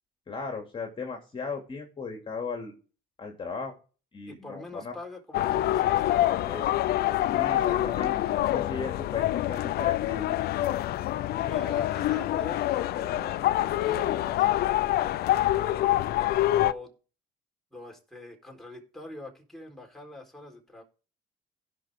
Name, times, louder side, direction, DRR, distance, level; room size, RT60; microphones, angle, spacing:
voice 1, 0.3-2.7 3.2-3.7 4.1-4.9 6.5-6.6 7.3-10.3, left 4 dB, 30° left, 2 dB, 2.8 m, -36 dB
voice 2, 4.3-6.7 11.4-14.6 15.0-15.9 16.6-16.9 17.7-20.8, left 2 dB, ahead, 0 dB, 4.2 m, -44 dB
sound 1, 5.3-16.7, left 14 dB, 70° left, 0.6 m, -26 dB
16.5 x 6.2 x 3.7 m, 0.36 s
cardioid pair, 110°, 17 cm